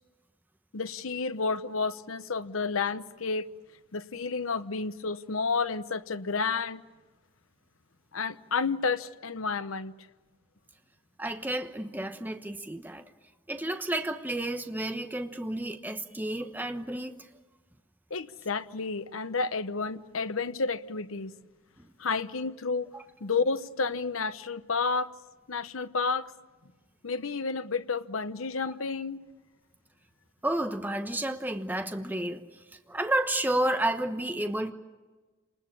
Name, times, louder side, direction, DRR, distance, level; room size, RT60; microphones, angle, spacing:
voice 1, 0.7-3.4 3.9-6.8 8.1-9.9 18.1-21.3 22.0-22.9 23.2-25.1 25.5-26.3 27.0-29.2, left 4 dB, 80° left, 0.9 m, -31 dB
voice 2, 11.2-13.0 13.5-17.3 21.8-21.9 22.9-23.0 28.7-28.8 30.4-34.7, right 1 dB, 10° right, 1.0 m, -31 dB
28.5 x 20.5 x 8.5 m
head